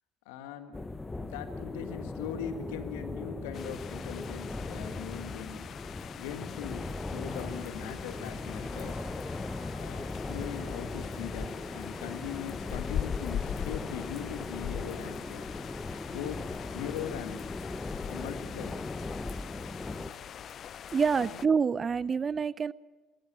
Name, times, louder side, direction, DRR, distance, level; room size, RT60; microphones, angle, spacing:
voice 1, 0.3-0.8 1.2-5.6 6.1-9.1 9.8-15.5 16.1-16.4 16.7-17.5 18.1-18.8 21.1-21.4, left 9 dB, 70° left, 9 dB, 1.7 m, -40 dB
sound 1, 0.7-20.1, left 2 dB, 20° left, 1.0 m, -38 dB
sound 2, 3.5-21.5, left 9 dB, 45° left, 0.5 m, -42 dB
Wind instrument woodwind instrument, 7.2-17.1, right 4 dB, 80° right, 4.2 m, -58 dB
voice 2, 20.9-22.7, right 6 dB, 35° right, 21 dB, 0.5 m, -27 dB
23.0 x 16.0 x 7.5 m, 1.3 s
hypercardioid pair, 60°, 0 cm